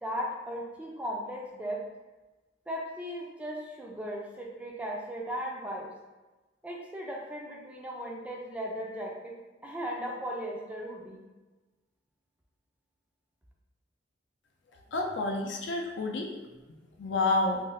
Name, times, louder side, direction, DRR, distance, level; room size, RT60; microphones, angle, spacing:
voice 1, 0.0-1.8 2.7-5.9 6.6-9.4 9.6-11.2, equal, 5° right, -2 dB, 0.3 m, -37 dB
voice 2, 14.9-16.3 17.0-17.6, left 2 dB, 70° left, 1 dB, 0.5 m, -29 dB
2.5 x 2.1 x 3.9 m, 1.2 s
head